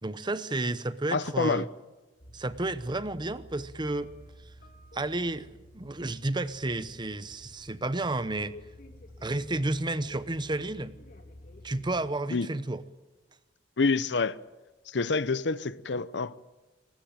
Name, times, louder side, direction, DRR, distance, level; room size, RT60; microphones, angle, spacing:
voice 1, 0.0-1.7 2.3-4.1 4.9-8.6 9.2-11.0 11.6-12.8, right 2 dB, 25° right, 0.9 m, -31 dB
voice 2, 1.1-1.7 12.3-12.5 13.8-14.4 14.9-16.4, left 4 dB, 70° left, 0.8 m, -27 dB
sound 1, 2.2-12.0, left 1 dB, 50° left, 2.7 m, -51 dB
22.5 x 19.5 x 9.0 m
head